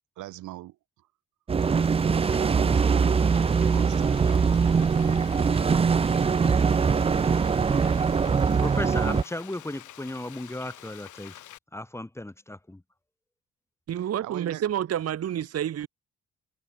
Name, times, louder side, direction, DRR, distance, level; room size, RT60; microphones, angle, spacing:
voice 1, 0.2-0.8 2.4-3.3 3.7-4.3 14.2-14.6, right 16 dB, 80° right, 0.9 m, -40 dB
sound 1, 1.5-9.2, right 5 dB, 20° right, 0.4 m, -22 dB
Frying (food), 1.6-11.6, left 13 dB, 80° left, 3.2 m, -47 dB
voice 2, 8.6-11.4 11.7-12.8, left 1 dB, 10° left, 1.6 m, -35 dB
voice 3, 13.9-15.9, right 10 dB, 55° right, 1.1 m, -29 dB
cardioid pair, 90°, 30 cm